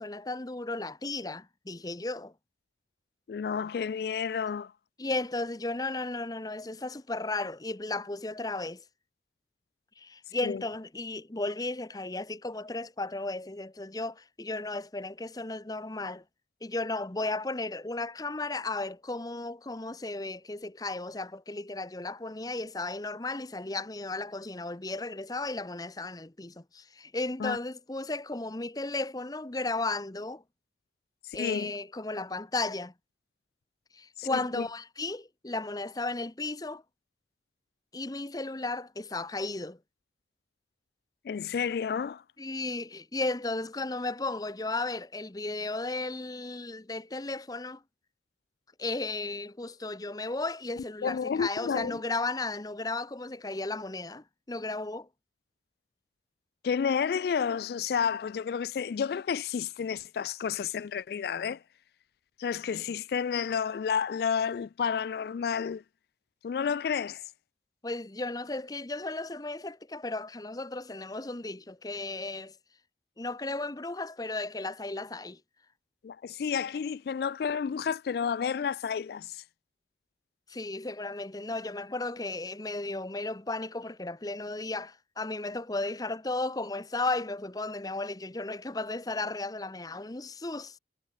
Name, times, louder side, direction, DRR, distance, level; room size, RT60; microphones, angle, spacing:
voice 1, 0.0-2.3 5.0-8.8 10.0-16.2 16.6-30.4 31.3-32.9 33.9-36.8 37.9-39.8 42.4-47.8 48.8-55.1 67.8-72.5 73.2-75.4 80.5-90.8, left 2 dB, 20° left, 0.8 m, -35 dB
voice 2, 3.3-4.7 10.4-10.6 27.4-27.6 31.3-31.7 34.2-34.7 41.2-42.2 51.0-52.0 56.6-61.6 62.4-65.8 66.4-67.2 76.0-79.4, left 7 dB, 60° left, 0.3 m, -31 dB
head